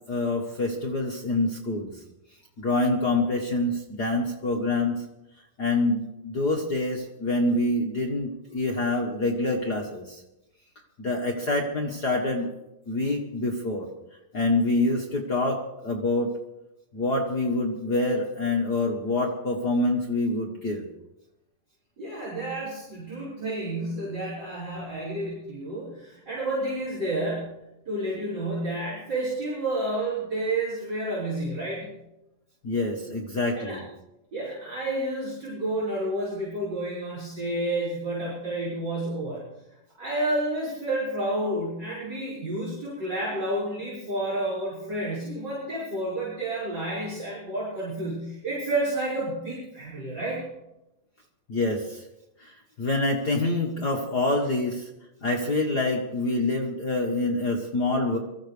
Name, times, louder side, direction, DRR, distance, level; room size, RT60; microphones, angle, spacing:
voice 1, 0.1-2.0 2.6-5.0 5.6-10.2 11.0-12.5 12.9-13.9 14.3-16.3 16.9-20.9 32.6-33.9 51.5-52.0 52.4-54.9 55.2-58.2, left 2 dB, 55° left, 0 dB, 1.1 m, -26 dB
voice 2, 22.0-27.6 27.9-32.0 33.5-33.8 34.3-39.4 40.0-50.4, right 1 dB, 30° right, -8 dB, 5.9 m, -30 dB
23.5 x 14.5 x 3.3 m, 0.92 s
omnidirectional pair, 3.8 m